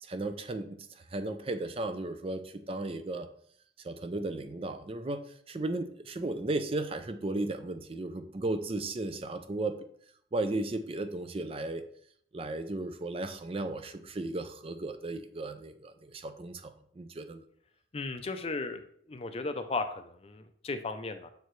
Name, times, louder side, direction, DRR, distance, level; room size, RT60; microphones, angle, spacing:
voice 1, 0.0-3.3 3.8-9.8 10.3-11.8 12.3-17.4, right 2 dB, 30° right, 9 dB, 0.4 m, -35 dB
voice 2, 17.9-18.8 19.1-21.3, left 3 dB, 30° left, 8 dB, 0.5 m, -35 dB
6.8 x 4.6 x 3.1 m, 0.62 s
head